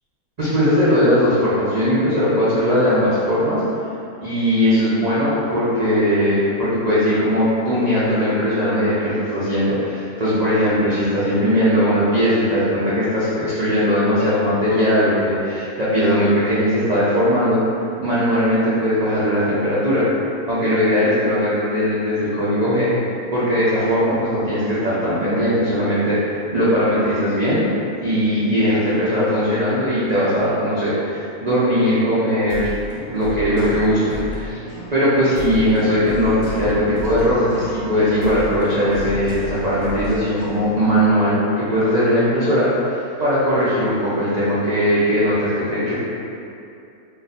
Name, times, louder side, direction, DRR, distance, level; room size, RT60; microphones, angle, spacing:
voice 1, 0.4-3.6 4.2-17.6 18.0-20.1 20.5-22.9 23.3-27.7 28.0-32.7 33.1-34.6 34.9-46.0, equal, 70° right, -11 dB, 0.4 m, -19 dB
sound 1, 32.5-40.9, left 1 dB, 60° left, 0.9 m, -32 dB
2.6 x 2.4 x 4.0 m, 2.6 s
omnidirectional pair, 1.6 m